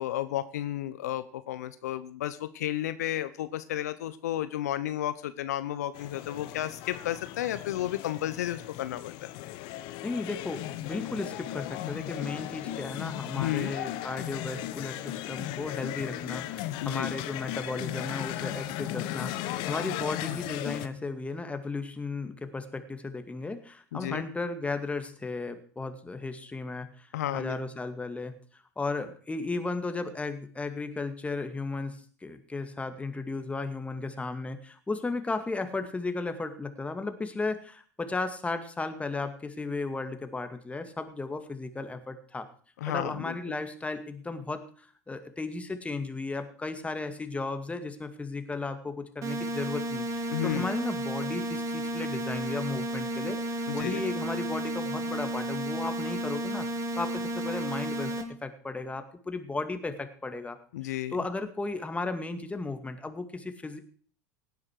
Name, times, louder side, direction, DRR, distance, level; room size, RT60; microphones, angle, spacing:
voice 1, 0.0-9.3 13.3-13.7 16.8-17.1 23.9-24.2 27.1-27.6 42.8-43.3 50.3-50.7 53.7-54.0 60.7-61.2, left 13 dB, 75° left, 13 dB, 0.8 m, -32 dB
sound 1, 5.9-20.9, left 14 dB, 60° left, 1.1 m, -36 dB
voice 2, 10.0-42.5 42.9-56.7 57.0-58.1 58.4-60.6 61.1-63.8, left 3 dB, 15° left, 8 dB, 2.2 m, -35 dB
sound 2, 49.2-58.2, right 1 dB, 35° right, 2.9 m, -32 dB
17.5 x 9.8 x 4.8 m, 0.44 s
hypercardioid pair, 80°, 9 cm